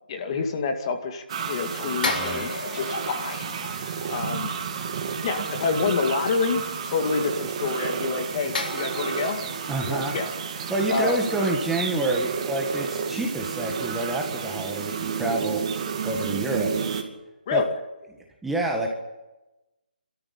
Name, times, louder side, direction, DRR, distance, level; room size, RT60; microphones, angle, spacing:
voice 1, 0.1-4.5 5.2-9.4 9.8-10.3 10.9-11.2 17.5-17.7, left 4 dB, 35° left, 5 dB, 2.3 m, -28 dB
sound 1, 1.3-17.0, right 6 dB, 40° right, 2.6 m, -31 dB
sound 2, 2.0-4.7 8.5-11.8 12.1-12.2, left 3 dB, 65° left, 3.1 m, -35 dB
voice 2, 2.0-2.5 9.7-10.1 10.7-15.6 16.0-16.8 17.5-17.6 18.4-18.9, right 2 dB, 5° right, -1 dB, 1.7 m, -28 dB
29.5 x 13.5 x 8.7 m, 1.0 s
hypercardioid pair, 165°, 5 cm